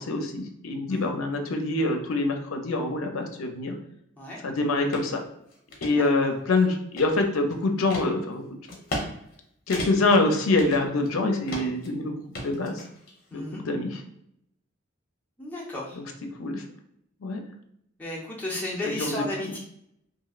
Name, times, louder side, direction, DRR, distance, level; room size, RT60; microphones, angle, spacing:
voice 1, 0.0-3.7 4.4-5.2 5.8-8.4 9.7-12.1 12.4-12.9 13.3-14.0 16.4-16.6 17.2-17.4 18.8-19.5, left 2 dB, 80° left, 4 dB, 0.5 m, -25 dB
sound 1, 4.9-5.1 5.5-5.9 6.5-7.4 7.9-8.1 8.7-9.1 9.3-9.4 9.7-10.2 10.6-11.2 11.5-11.9 12.3-13.1, left 1 dB, 45° left, 0.7 m, -34 dB
voice 2, 5.9-6.3 13.3-13.6 15.4-16.0 18.0-19.6, left 1 dB, 10° left, -5 dB, 0.7 m, -34 dB
2.9 x 2.7 x 2.3 m, 0.75 s
head